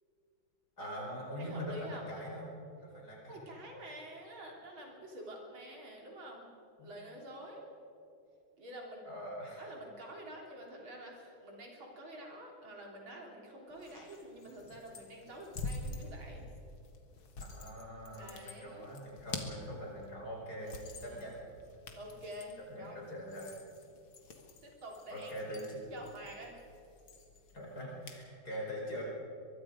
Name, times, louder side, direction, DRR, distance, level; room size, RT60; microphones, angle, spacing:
voice 1, 0.8-3.5 6.8-6.9 9.0-9.6 17.4-21.4 22.7-23.6 25.1-25.8 27.5-29.0, equal, 50° left, -2 dB, 5.5 m, -43 dB
voice 2, 1.4-2.1 3.3-6.5 6.8-7.7 8.6-9.1 9.6-16.5 18.2-18.9 20.6-21.2 21.9-23.0 24.6-25.6 25.9-26.6, right 1 dB, 90° right, 0 dB, 4.2 m, -48 dB
sound 1, 13.7-28.3, left 3 dB, 80° left, 2.6 m, -48 dB
23.0 x 23.0 x 5.1 m, 2.6 s
omnidirectional pair, 2.2 m